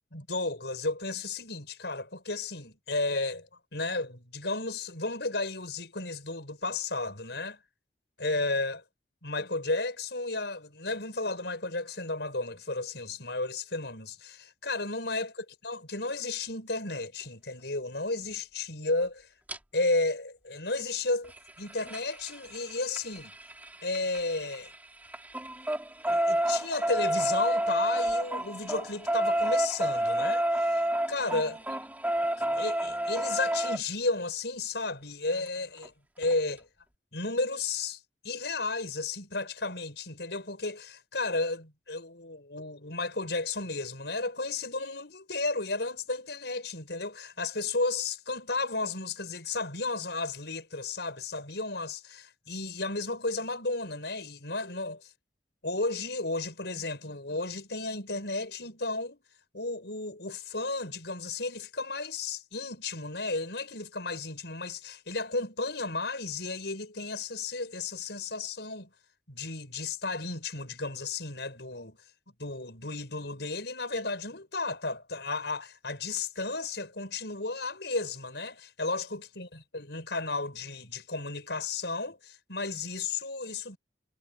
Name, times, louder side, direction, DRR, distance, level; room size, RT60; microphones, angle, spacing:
voice 1, 0.1-7.6 8.2-8.8 9.2-19.3 19.7-21.3 21.6-23.3 23.8-24.7 26.1-31.6 32.4-35.9 36.2-36.7 37.1-38.0 38.2-55.1 55.6-59.2 59.5-68.9 69.3-72.0 72.4-83.8, left 3 dB, 65° left, 7.3 m, -33 dB
sound 1, 19.5-19.6 21.2-24.8 25.1-33.8 35.5-35.6 35.8-35.9 36.2-36.3, right 1 dB, 10° right, 2.9 m, -29 dB
head